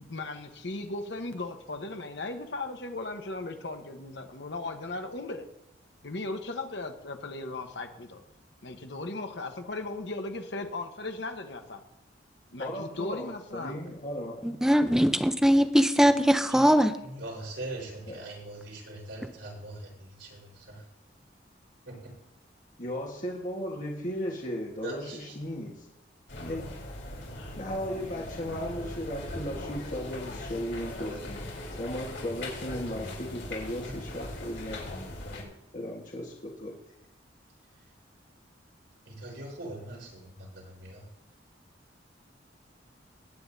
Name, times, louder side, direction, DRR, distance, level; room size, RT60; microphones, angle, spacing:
voice 1, 0.0-5.5 6.0-8.2 8.6-11.8 12.5-13.8, left 2 dB, 65° left, 5 dB, 1.2 m, -37 dB
voice 2, 12.6-14.6 18.1-18.2 22.8-25.9 26.3-26.6 27.6-31.5 31.8-34.9 35.7-36.7, equal, 45° left, -2 dB, 1.5 m, -36 dB
voice 3, 14.4-16.9, equal, 5° right, 9 dB, 0.6 m, -21 dB
voice 4, 16.5-20.8 21.9-22.1 24.8-25.7 33.9-34.0 39.0-41.1, right 2 dB, 85° right, -3 dB, 4.5 m, -42 dB
sound 1, 26.3-35.4, left 1 dB, 80° left, 4.2 m, -39 dB
19.0 x 9.3 x 2.8 m, 0.85 s
head